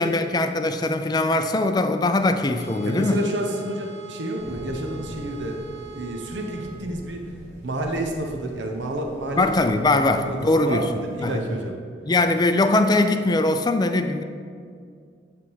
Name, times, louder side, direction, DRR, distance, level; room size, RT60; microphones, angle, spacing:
voice 1, 0.0-3.2 9.4-10.9 11.2-11.4 12.1-14.2, left 2 dB, 20° left, 7 dB, 0.4 m, -21 dB
sound 1, 2.5-6.7, right 4 dB, 60° right, 1.2 m, -41 dB
voice 2, 2.8-7.3 7.6-9.5 10.2-11.8, right 1 dB, 85° right, 2 dB, 0.8 m, -30 dB
sound 2, 4.4-11.5, left 1 dB, 35° right, 1.8 m, -43 dB
10.0 x 3.5 x 6.2 m, 2.2 s
head